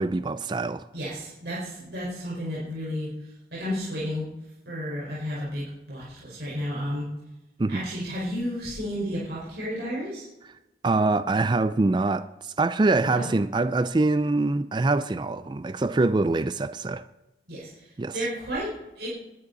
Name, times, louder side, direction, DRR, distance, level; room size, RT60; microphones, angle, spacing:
voice 1, 0.0-0.8 7.6-7.8 10.8-17.0 18.0-18.1, right 3 dB, 25° right, 0.4 m, -24 dB
voice 2, 0.9-4.3 4.6-7.1 7.7-10.3 12.9-13.3 17.5-19.1, equal, 65° right, 4.8 m, -32 dB
20.5 x 10.5 x 4.0 m
head